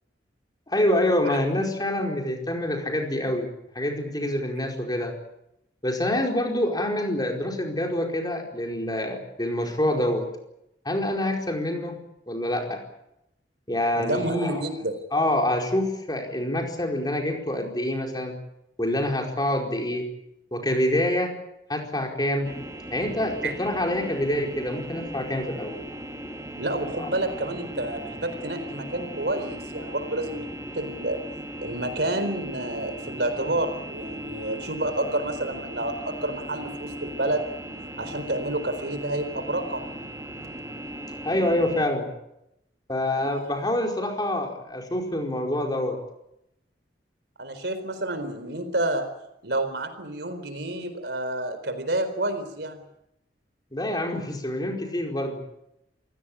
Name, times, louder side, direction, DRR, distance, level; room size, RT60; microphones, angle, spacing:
voice 1, 0.7-3.5 3.7-5.2 5.8-10.3 10.8-12.0 12.3-12.8 13.7-14.7 15.1-18.3 18.8-20.1 20.5-21.3 21.7-22.5 22.9-25.7 27.0-27.1 41.2-42.1 42.9-46.0 53.7-55.4, left 1 dB, 20° left, 2 dB, 4.8 m, -26 dB
voice 2, 14.0-14.9 23.4-23.5 26.6-30.4 30.7-31.2 31.6-37.5 38.0-39.9 43.2-43.5 47.4-49.1 49.4-52.8, right 1 dB, 65° right, 9 dB, 4.2 m, -29 dB
sound 1, 22.4-41.9, right 1 dB, 20° right, 2.9 m, -38 dB
28.0 x 17.0 x 8.8 m, 0.84 s
head